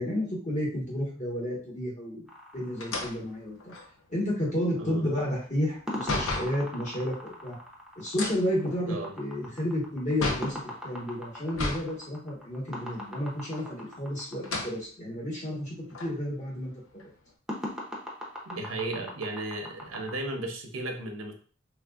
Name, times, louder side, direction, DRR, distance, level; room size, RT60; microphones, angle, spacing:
voice 1, 0.0-2.2 2.5-3.7 4.1-7.6 8.0-15.7 16.0-16.7, equal, 35° left, -4 dB, 1.2 m, -31 dB
sound 1, 2.3-3.7 5.9-14.5 17.5-20.1, left 1 dB, ahead, 0.5 m, -40 dB
sound 2, 2.8-6.6 8.1-10.6 11.5-11.9 12.3-12.4 13.5-14.0 14.4-14.8 15.4-15.5 15.9-17.3, left 2 dB, 75° left, 0.6 m, -35 dB
voice 2, 18.5-21.3, right 2 dB, 80° right, 4 dB, 0.6 m, -35 dB
3.1 x 2.6 x 2.3 m, 0.43 s
head